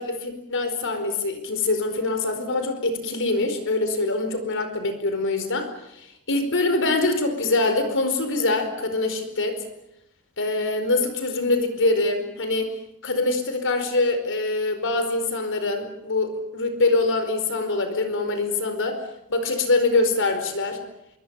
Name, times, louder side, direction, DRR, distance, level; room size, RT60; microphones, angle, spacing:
voice 1, 0.0-5.7 5.9-9.7 10.4-12.7 13.0-19.0 19.3-20.8, left 2 dB, 60° left, 8 dB, 4.7 m, -24 dB
26.0 x 23.5 x 7.2 m, 0.82 s
head